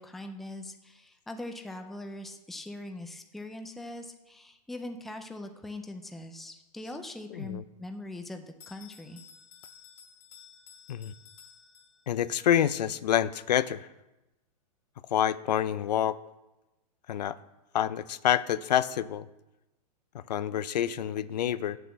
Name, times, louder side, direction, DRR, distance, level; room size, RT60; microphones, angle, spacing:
voice 1, 0.0-9.2, left 1 dB, ahead, 5 dB, 0.4 m, -41 dB
voice 2, 7.3-7.6 10.9-11.1 12.1-13.9 15.1-16.2 17.1-17.4 17.7-19.3 20.1-21.8, left 10 dB, 90° left, 15 dB, 0.6 m, -27 dB
Bell, 8.6-12.3, left 7 dB, 70° left, 2.6 m, -54 dB
8.1 x 6.9 x 7.5 m, 0.98 s
supercardioid pair, 160°, 21 cm